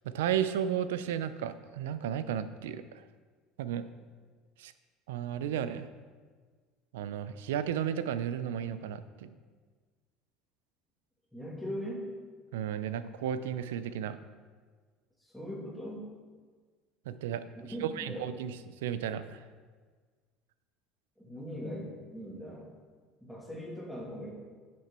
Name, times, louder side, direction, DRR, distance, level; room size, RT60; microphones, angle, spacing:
voice 1, 0.0-3.0 3.6-3.9 4.6-4.7 5.1-5.9 6.9-9.3 12.5-14.2 17.1-17.4 17.8-18.5 18.8-19.4, right 9 dB, 85° right, 13 dB, 0.5 m, -33 dB
voice 2, 11.3-12.1 15.2-16.1 17.6-18.3 21.2-22.7 23.2-24.3, equal, ahead, -3 dB, 2.5 m, -40 dB
10.0 x 6.2 x 4.4 m, 1.5 s
supercardioid pair, 90°, 0 cm